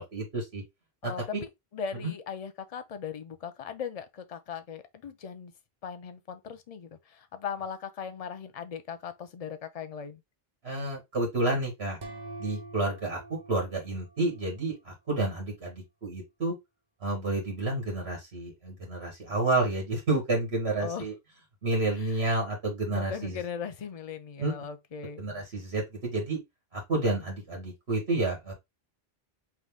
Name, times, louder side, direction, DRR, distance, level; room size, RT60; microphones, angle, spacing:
voice 1, 0.1-0.6 1.0-1.4 2.0-2.1 10.6-12.0 12.4-16.5 17.0-21.1 21.6-23.4 24.4-24.5 25.2-26.4 26.7-28.5, right 2 dB, 85° right, 2.2 m, -30 dB
voice 2, 1.0-5.5 5.8-10.2 20.8-21.1 22.0-22.2 22.9-25.2, left 7 dB, 45° left, 0.6 m, -39 dB
sound 1, 12.0-14.8, right 2 dB, 45° right, 1.0 m, -45 dB
4.0 x 2.8 x 3.5 m
omnidirectional pair, 1.0 m